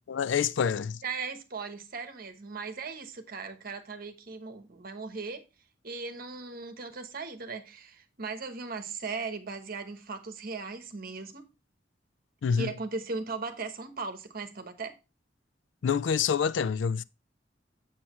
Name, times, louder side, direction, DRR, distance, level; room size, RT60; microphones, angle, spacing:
voice 1, 0.1-1.0 12.4-12.7 15.8-17.0, left 7 dB, 80° left, 0.4 m, -27 dB
voice 2, 1.0-5.4 5.8-11.4 12.5-15.0, right 4 dB, 50° right, 1.1 m, -38 dB
7.1 x 7.1 x 3.0 m
head